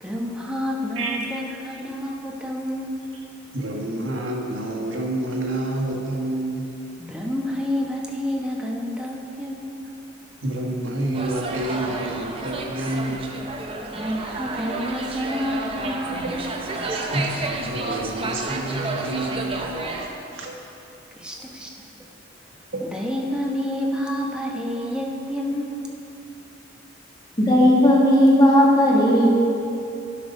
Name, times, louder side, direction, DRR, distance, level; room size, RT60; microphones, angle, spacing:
voice 1, 0.0-2.9 7.0-9.8 13.9-16.4 21.2-21.7 22.8-25.8, equal, 5° right, -2 dB, 1.0 m, -29 dB
voice 2, 3.5-6.7 10.4-13.4 15.8-16.3 16.8-19.7 20.0-20.6 22.7-22.9, right 1 dB, 80° right, -1 dB, 1.5 m, -29 dB
sound 1, 11.1-20.1, right 2 dB, 30° right, 0.7 m, -31 dB
voice 3, 27.4-29.3, equal, 20° left, -4 dB, 1.7 m, -15 dB
12.0 x 5.5 x 5.4 m, 2.8 s
head